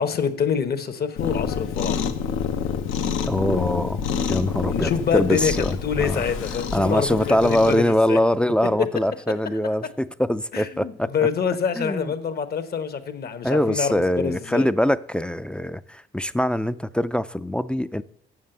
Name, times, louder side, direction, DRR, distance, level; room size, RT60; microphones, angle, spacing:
voice 1, 0.0-2.1 4.7-5.5 5.8-8.2 8.8-8.9 10.5-14.7, left 7 dB, 50° left, 9 dB, 1.0 m, -26 dB
Cat, 1.2-7.8, left 7 dB, 90° left, 0.9 m, -28 dB
voice 2, 3.3-6.2 6.7-11.1 11.8-12.1 13.4-18.0, left 1 dB, 5° left, 13 dB, 0.3 m, -23 dB
7.5 x 6.4 x 7.7 m, 0.69 s
cardioid pair, 90°, 20 cm